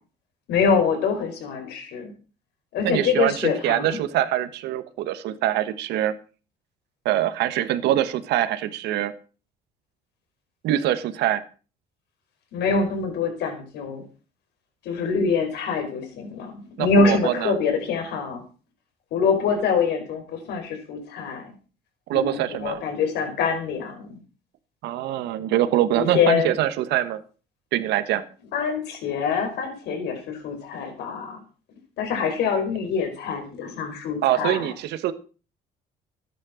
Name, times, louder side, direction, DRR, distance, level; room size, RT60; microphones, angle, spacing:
voice 1, 0.5-2.1 2.7-4.0 12.5-14.0 14.8-18.4 19.1-21.4 22.1-24.2 25.9-26.5 28.5-31.4 32.0-34.7, left 5 dB, 80° left, 4 dB, 5.0 m, -25 dB
voice 2, 2.8-6.1 7.0-9.1 10.6-11.4 16.8-17.6 22.1-22.8 24.8-27.2 27.7-28.2 34.2-35.1, right 12 dB, 85° right, 11 dB, 1.4 m, -24 dB
13.5 x 10.0 x 6.4 m, 0.37 s
cardioid pair, 110°, 17 cm